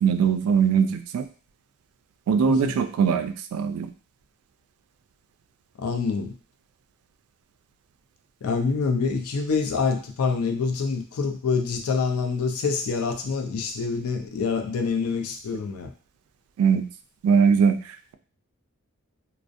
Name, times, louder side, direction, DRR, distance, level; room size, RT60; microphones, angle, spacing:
voice 1, 0.0-1.3 2.3-3.9 16.6-16.9 17.2-17.8, right 6 dB, 90° right, 11 dB, 0.3 m, -21 dB
voice 2, 2.4-2.8 5.8-6.4 8.4-15.9, left 5 dB, 85° left, 5 dB, 0.4 m, -26 dB
2.4 x 2.0 x 2.5 m, 0.40 s
head